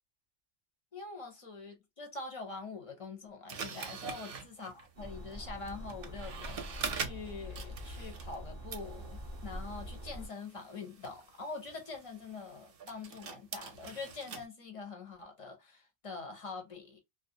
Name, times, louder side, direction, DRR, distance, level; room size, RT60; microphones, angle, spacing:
voice 1, 0.9-6.6 6.9-17.0, left 4 dB, 40° left, 0.6 m, -44 dB
sound 1, 3.5-8.4 8.7-14.5, right 6 dB, 60° right, 0.7 m, -44 dB
sound 2, 5.0-10.3, equal, 15° right, 0.8 m, -44 dB
2.3 x 2.0 x 2.6 m
omnidirectional pair, 1.2 m